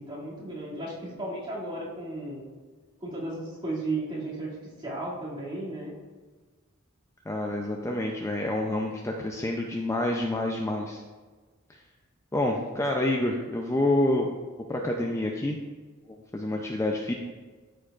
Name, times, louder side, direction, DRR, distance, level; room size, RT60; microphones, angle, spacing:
voice 1, 0.0-2.4 3.0-4.5 4.8-5.9, right 2 dB, 25° right, -7 dB, 2.4 m, -34 dB
voice 2, 7.3-11.0 12.3-14.3 14.7-15.6 16.3-17.1, left 1 dB, 15° left, 1 dB, 0.5 m, -27 dB
13.0 x 4.6 x 2.4 m, 1.4 s
head